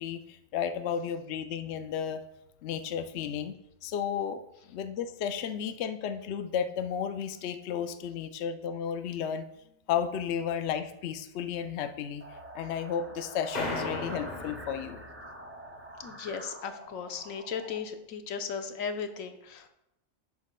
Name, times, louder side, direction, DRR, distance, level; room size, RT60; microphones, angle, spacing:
voice 1, 0.0-2.2 2.6-3.5 3.8-4.4 4.7-9.4 9.9-12.2 12.5-15.0, left 8 dB, 65° left, 9 dB, 0.8 m, -33 dB
sound 1, 12.2-17.8, right 1 dB, 15° right, 0.5 m, -46 dB
sound 2, 13.5-15.5, left 2 dB, 35° left, 1.3 m, -36 dB
voice 2, 16.0-19.7, left 6 dB, 85° left, 7 dB, 1.2 m, -36 dB
11.0 x 8.3 x 2.2 m, 0.83 s
omnidirectional pair, 1.3 m